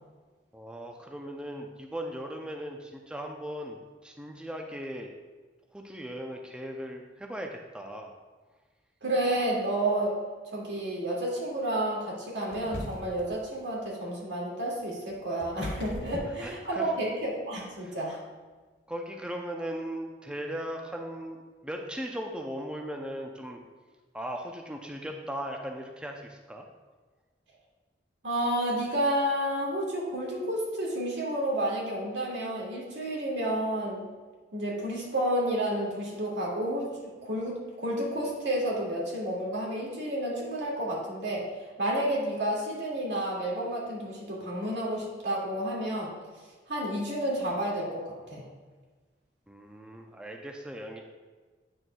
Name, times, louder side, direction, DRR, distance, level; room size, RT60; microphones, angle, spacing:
voice 1, 0.5-5.1 5.7-8.1 16.4-16.9 17.8-17.9 18.9-23.6 24.1-26.7 49.5-51.0, equal, 5° right, 2 dB, 0.4 m, -38 dB
voice 2, 9.0-10.2 10.5-18.2 28.2-34.1 34.5-41.5 41.8-46.1 46.7-48.4, right 1 dB, 85° right, -4 dB, 2.1 m, -30 dB
sound 1, 12.5-13.3 14.8-17.1, left 1 dB, 70° left, 0.9 m, -39 dB
8.8 x 6.5 x 2.3 m, 1.4 s
head